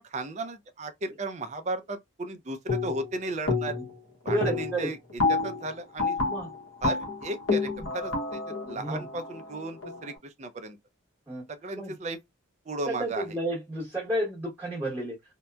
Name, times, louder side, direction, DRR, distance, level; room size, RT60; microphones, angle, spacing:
voice 1, 0.0-3.7 4.2-5.0 5.3-6.2 6.8-10.8 11.5-12.2 12.7-13.4, right 2 dB, 35° right, 0.4 m, -35 dB
sound 1, 2.7-3.1 3.5-4.0 4.3-10.1, left 3 dB, 70° left, 0.9 m, -29 dB
voice 2, 4.3-4.9 6.2-6.5 8.7-9.0 11.3-11.4 11.8-11.9 12.9-15.2, right 1 dB, 10° right, 1.1 m, -31 dB
2.7 x 2.1 x 2.2 m
head